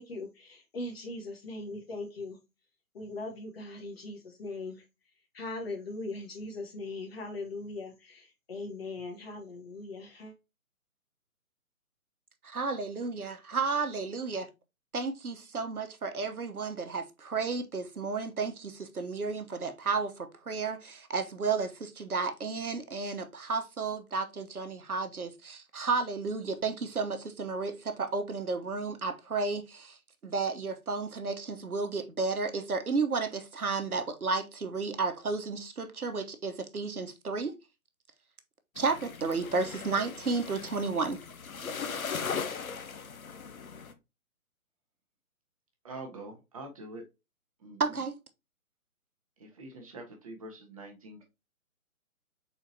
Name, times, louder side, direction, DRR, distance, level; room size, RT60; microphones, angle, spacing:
voice 1, 0.0-2.4 2.9-4.8 5.3-10.3, left 2 dB, 45° left, 1.3 m, -40 dB
voice 2, 12.4-14.5 14.9-30.0 30.2-37.5 38.8-41.2 47.8-48.1, right 4 dB, 80° right, 1.0 m, -32 dB
sound 1, 38.8-43.9, left 6 dB, 70° left, 0.8 m, -38 dB
voice 3, 45.8-47.0 47.6-48.0 49.4-51.2, right 2 dB, 25° right, 0.8 m, -45 dB
4.5 x 4.1 x 2.7 m
figure-of-eight pair, 135°, 43 cm